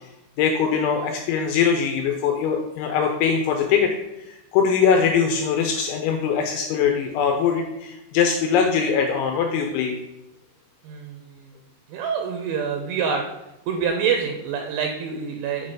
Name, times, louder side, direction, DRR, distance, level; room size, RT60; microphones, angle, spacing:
voice 1, 0.4-3.9 4.5-10.0, left 6 dB, 85° left, 4 dB, 2.7 m, -21 dB
voice 2, 10.8-11.5 11.9-13.2 13.7-15.7, right 6 dB, 80° right, 3 dB, 2.8 m, -26 dB
7.7 x 4.4 x 4.9 m, 0.91 s
omnidirectional pair, 5.9 m